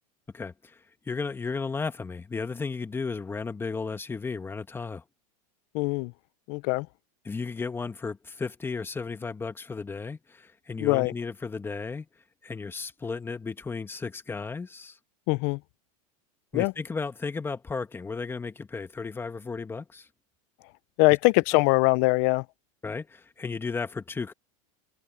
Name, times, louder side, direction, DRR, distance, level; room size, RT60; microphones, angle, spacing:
voice 1, 0.3-5.0 7.2-12.0 12.4-15.0 16.5-20.1 22.8-24.3, left 4 dB, 10° left, 1.6 m, -34 dB
voice 2, 5.7-6.1 6.5-6.9 10.8-11.1 15.3-15.6 16.5-16.7 21.0-22.4, left 27 dB, 55° left, 0.7 m, -22 dB
supercardioid pair, 130°, 18 cm